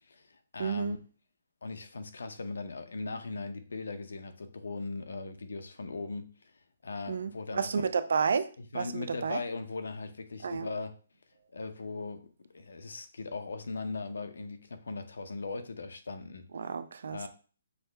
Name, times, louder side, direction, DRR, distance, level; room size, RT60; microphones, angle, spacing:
voice 1, 0.1-1.0 1.6-6.5 6.8-7.8 8.6-10.9 11.5-16.5 17.1-17.3, left 3 dB, 90° left, 0.6 m, -39 dB
voice 2, 0.6-1.0 7.1-8.5 8.7-9.4 10.4-10.7 16.5-17.3, right 5 dB, 65° right, 0.4 m, -31 dB
6.0 x 2.1 x 3.3 m
hypercardioid pair, 170°, 0 cm